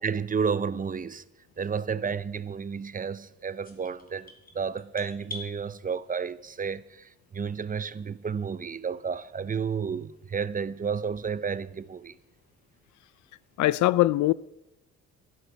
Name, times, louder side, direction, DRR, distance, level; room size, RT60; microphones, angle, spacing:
voice 1, 0.0-1.2 1.6-12.1, right 6 dB, 25° right, 0.7 m, -31 dB
sound 1, 3.6-5.5, left 1 dB, 30° left, 3.1 m, -43 dB
voice 2, 13.6-14.3, left 16 dB, 75° left, 0.5 m, -21 dB
15.0 x 12.0 x 4.6 m
cardioid pair, 90°, 30 cm